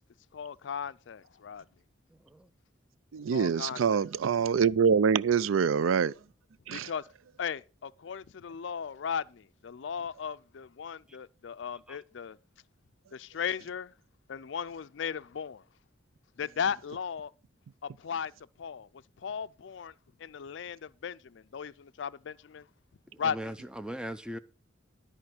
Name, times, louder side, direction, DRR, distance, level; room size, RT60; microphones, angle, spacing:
voice 1, 0.3-1.6 3.3-4.0 6.7-7.0 7.4-12.4 13.1-13.9 14.3-15.6 16.4-17.3 17.8-18.3 18.6-18.9 19.2-19.9 20.2-22.7 23.2-23.5, left 7 dB, 65° left, 0.4 m, -36 dB
voice 2, 3.1-6.1 6.7-6.9, right 6 dB, 85° right, 0.4 m, -25 dB
voice 3, 23.2-24.4, equal, 5° right, 0.5 m, -39 dB
13.0 x 4.5 x 7.7 m
head